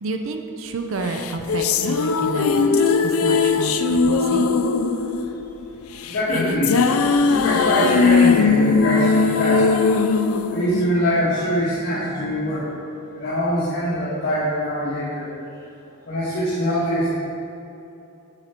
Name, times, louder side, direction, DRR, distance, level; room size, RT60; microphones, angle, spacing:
voice 1, 0.0-4.5, right 3 dB, 65° right, 5 dB, 0.6 m, -30 dB
sound 1, 1.1-11.5, left 4 dB, 85° left, 0.5 m, -19 dB
voice 2, 6.1-6.8 7.2-9.7 10.5-12.7 13.1-15.3 16.0-17.1, equal, 50° left, -11 dB, 1.9 m, -23 dB
9.0 x 5.8 x 4.5 m, 2.8 s
head